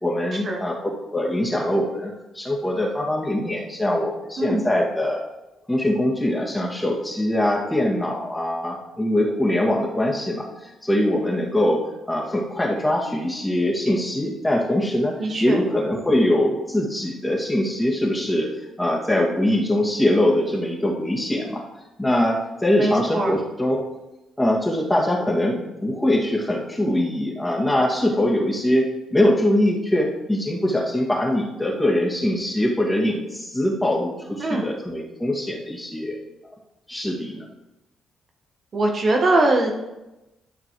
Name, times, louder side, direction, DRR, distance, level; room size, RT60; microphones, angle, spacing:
voice 1, 0.0-5.2 5.7-18.5 18.8-21.6 22.0-23.8 24.4-36.2 36.9-37.5, left 1 dB, 10° left, -2 dB, 2.0 m, -22 dB
voice 2, 15.2-15.6 22.8-23.3 34.4-34.7 38.7-39.7, right 2 dB, 45° right, 2 dB, 1.1 m, -21 dB
12.5 x 6.0 x 3.1 m, 0.99 s
cardioid pair, 90°, 0 cm